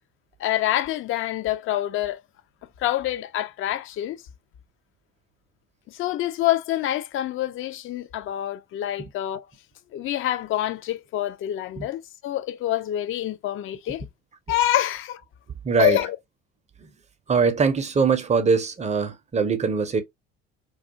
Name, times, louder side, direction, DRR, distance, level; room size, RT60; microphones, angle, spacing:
voice 1, 0.4-2.2 2.8-4.2 5.9-9.5 9.9-14.0 14.5-15.2 15.8-16.2, left 13 dB, 40° left, 0.4 m, -26 dB
voice 2, 15.6-16.0 17.3-20.0, right 5 dB, 20° right, 0.5 m, -22 dB
2.3 x 2.2 x 2.8 m
hypercardioid pair, 65°, 32 cm